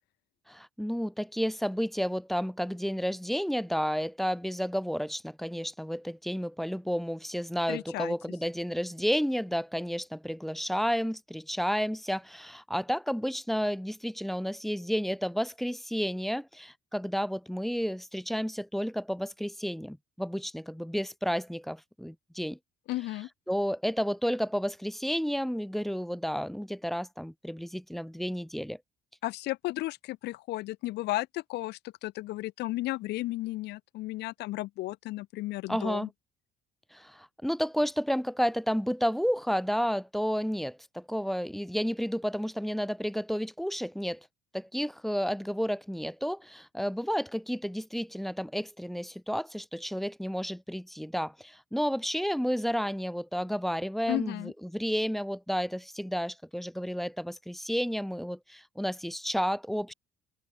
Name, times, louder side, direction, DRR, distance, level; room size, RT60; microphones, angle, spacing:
voice 1, 0.5-22.6 23.5-28.8 35.7-36.1 36.9-44.2 44.5-59.9, equal, ahead, 1.2 m, -31 dB
voice 2, 7.7-8.2 22.9-23.3 29.2-36.1 54.1-54.5, left 18 dB, 85° left, 3.7 m, -34 dB
open air
cardioid pair, 110°, 17 cm